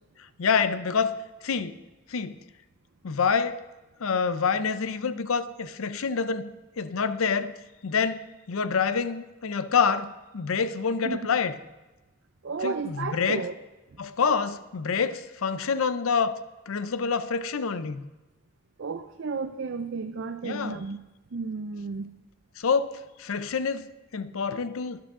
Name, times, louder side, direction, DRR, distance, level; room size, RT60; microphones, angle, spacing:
voice 1, 0.4-1.2 1.4-1.8 2.1-2.4 3.0-3.7 4.0-6.5 6.8-7.5 7.8-11.5 12.6-13.4 14.0-16.4 16.7-18.1 20.4-20.8 22.6-25.0, left 5 dB, 75° left, 0.5 m, -27 dB
voice 2, 12.4-13.5 18.8-21.0 21.3-22.1, right 4 dB, 55° right, 0.5 m, -32 dB
12.0 x 10.5 x 3.7 m
head